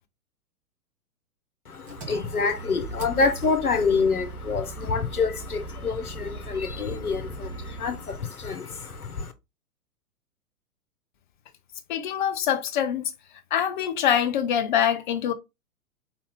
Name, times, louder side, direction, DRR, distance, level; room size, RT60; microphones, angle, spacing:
voice 1, 1.7-9.3, left 4 dB, 75° left, 1.0 m, -27 dB
Engine, 1.9-8.2, right 3 dB, 20° right, 1.4 m, -39 dB
voice 2, 11.9-13.1 13.5-15.3, left 9 dB, 35° left, 0.6 m, -24 dB
4.5 x 2.8 x 3.5 m
figure-of-eight pair, 110°, 44 cm